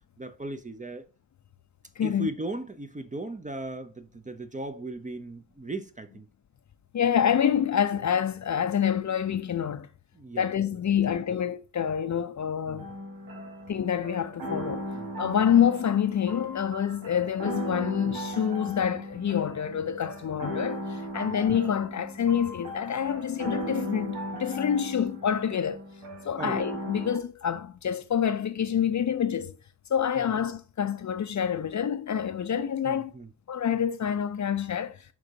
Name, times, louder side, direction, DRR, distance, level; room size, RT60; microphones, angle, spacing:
voice 1, 0.2-1.1 2.0-6.3 10.1-10.5 10.7-10.8 11.1-11.2 12.7-12.9 14.9-15.1 26.4-26.6 30.2-30.3 32.8-33.3, right 2 dB, 15° right, 0.7 m, -37 dB
voice 2, 2.0-2.3 6.9-9.9 10.4-12.9 13.7-14.9 15.2-25.8 26.2-29.5 29.9-33.1 33.5-35.0, left 8 dB, 40° left, 0.6 m, -27 dB
sound 1, 12.8-27.2, equal, 85° right, 1.4 m, -37 dB
10.5 x 3.5 x 2.9 m
hypercardioid pair, 40°, 48 cm